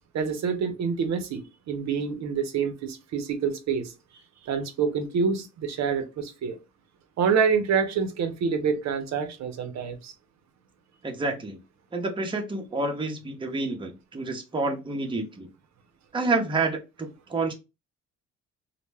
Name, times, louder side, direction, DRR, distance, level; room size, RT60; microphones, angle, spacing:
voice 1, 0.1-1.4 1.7-3.9 4.4-6.6 7.2-10.1, right 6 dB, 60° right, 0.6 m, -27 dB
voice 2, 11.0-11.6 11.9-15.5 16.1-17.5, right 3 dB, 15° right, 0.6 m, -29 dB
2.1 x 2.1 x 3.2 m
cardioid pair, 95°, 30 cm